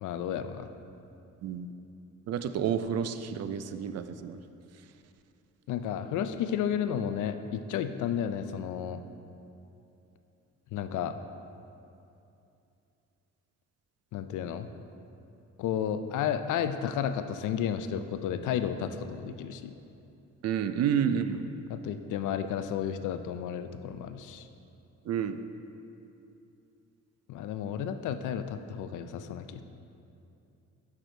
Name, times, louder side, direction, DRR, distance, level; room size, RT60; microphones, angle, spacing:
voice 1, 0.0-0.7 5.7-9.0 10.7-11.2 14.1-14.7 15.6-19.7 21.7-24.5 27.3-29.6, left 9 dB, 80° left, 10 dB, 0.5 m, -32 dB
voice 2, 2.3-4.4 20.4-21.4 25.1-25.4, right 8 dB, 55° right, 10 dB, 0.5 m, -30 dB
7.8 x 6.1 x 4.4 m, 2.7 s
cardioid pair, 90°, 30 cm